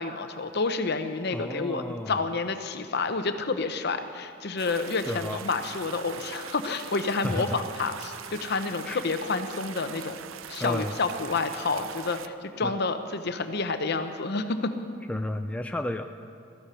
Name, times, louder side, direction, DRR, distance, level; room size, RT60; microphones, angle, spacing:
voice 1, 0.0-10.2 10.5-14.7, left 4 dB, 55° left, 8 dB, 0.8 m, -29 dB
voice 2, 1.3-2.3 5.1-5.4 7.2-7.6 8.9-9.0 10.6-11.0 12.6-12.7 15.1-16.1, left 1 dB, 5° left, 6 dB, 0.3 m, -32 dB
sound 1, 4.6-12.3, right 8 dB, 90° right, 0.5 m, -42 dB
14.0 x 13.0 x 5.7 m, 2.4 s
head